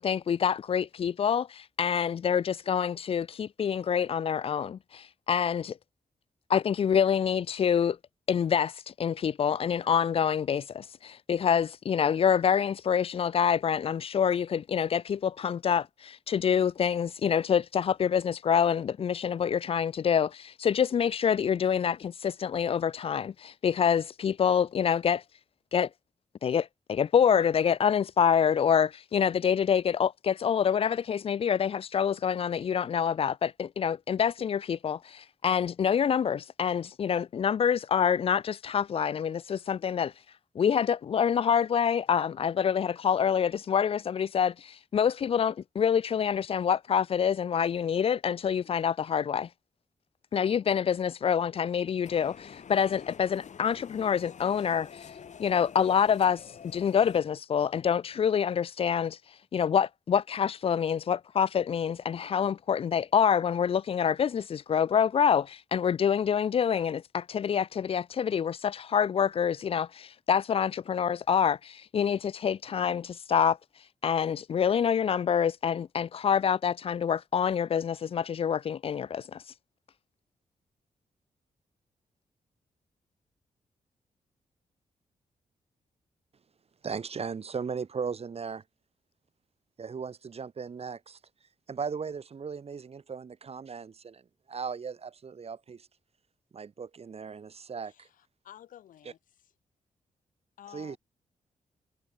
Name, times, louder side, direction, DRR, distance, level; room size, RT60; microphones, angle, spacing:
voice 1, 0.0-5.8 6.5-8.0 8.3-25.2 25.7-25.9 26.4-49.5 50.3-79.5, left 7 dB, 45° left, 0.4 m, -26 dB
sound 1, 52.0-57.2, left 7 dB, 65° left, 5.1 m, -48 dB
voice 2, 86.8-88.6 89.8-91.2 91.7-94.2 94.5-95.9 96.5-98.1 100.7-101.0, right 6 dB, 50° right, 1.7 m, -37 dB
voice 3, 97.8-99.5 100.6-101.0, left 11 dB, 90° left, 2.9 m, -52 dB
cardioid pair, 75°, 13 cm